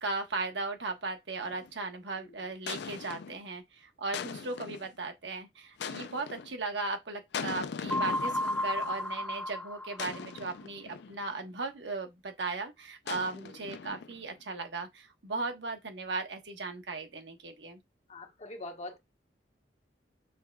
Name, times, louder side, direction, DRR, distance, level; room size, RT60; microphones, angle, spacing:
voice 1, 0.0-17.8, right 3 dB, 80° right, 1.1 m, -37 dB
sound 1, 1.4-1.7 2.7-3.4 4.1-4.9 5.8-6.6 7.3-9.0 10.0-11.2 13.1-14.3, left 6 dB, 70° left, 0.4 m, -40 dB
sound 2, 7.9-10.5, left 1 dB, 5° left, 0.4 m, -33 dB
voice 2, 18.1-19.0, left 2 dB, 40° left, 1.1 m, -43 dB
6.2 x 3.5 x 2.3 m
head